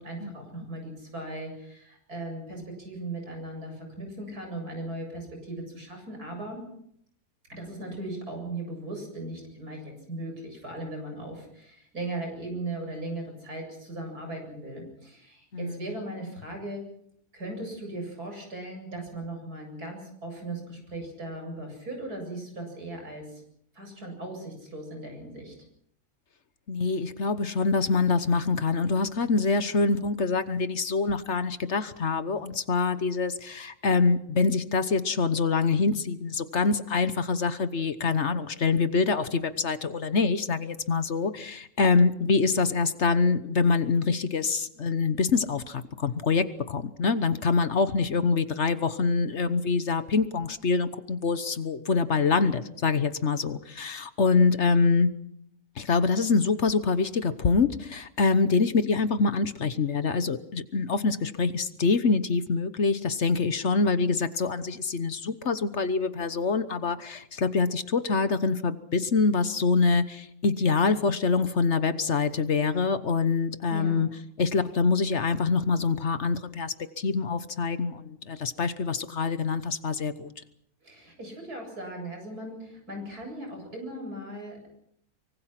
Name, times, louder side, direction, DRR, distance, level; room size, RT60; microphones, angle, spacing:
voice 1, 0.0-6.6 7.5-16.8 17.3-23.4 23.7-25.5 73.7-74.1 80.8-84.7, right 2 dB, 90° right, 3 dB, 8.5 m, -38 dB
voice 2, 26.7-55.1 55.8-74.1 74.4-80.3, left 4 dB, 50° left, 12 dB, 1.3 m, -25 dB
24.5 x 24.0 x 5.9 m, 0.69 s
omnidirectional pair, 1.6 m